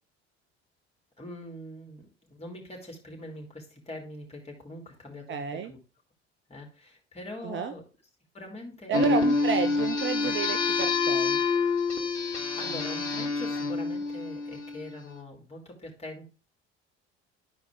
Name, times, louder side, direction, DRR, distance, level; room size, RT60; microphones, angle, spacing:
voice 1, 1.2-5.8 6.5-7.8 8.3-9.3 12.4-16.3, left 1 dB, 20° left, 1 dB, 3.1 m, -43 dB
voice 2, 5.3-5.7 7.4-7.7 8.9-11.4, right 6 dB, 35° right, 9 dB, 0.6 m, -31 dB
sound 1, 8.9-14.9, left 4 dB, 85° left, 0.8 m, -27 dB
12.0 x 4.8 x 3.7 m, 0.32 s
figure-of-eight pair, 55°, 35 cm